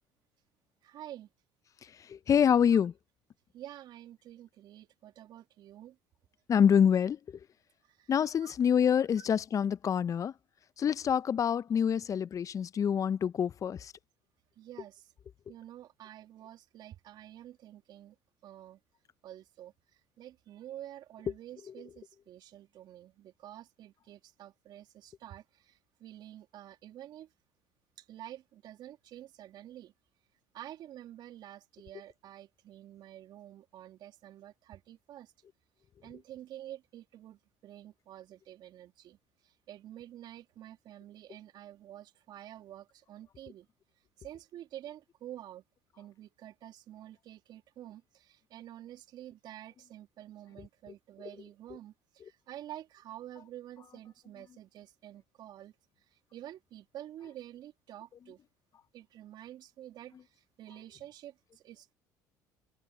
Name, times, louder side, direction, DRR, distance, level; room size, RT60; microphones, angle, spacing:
voice 1, 0.8-1.3 3.5-6.0 7.9-8.1 8.4-8.5 9.2-9.3 14.6-15.1 15.5-18.1 18.4-18.8 19.2-27.3 28.0-29.9 30.5-35.3 36.0-39.2 39.4-43.7 44.2-45.6 46.0-55.7 56.1-58.4 58.9-61.9, right 12 dB, 55° right, 2.9 m, -49 dB
voice 2, 2.1-2.9 6.5-7.2 8.1-10.3 10.8-13.9, left 8 dB, 40° left, 0.8 m, -26 dB
hypercardioid pair, 70°, 9 cm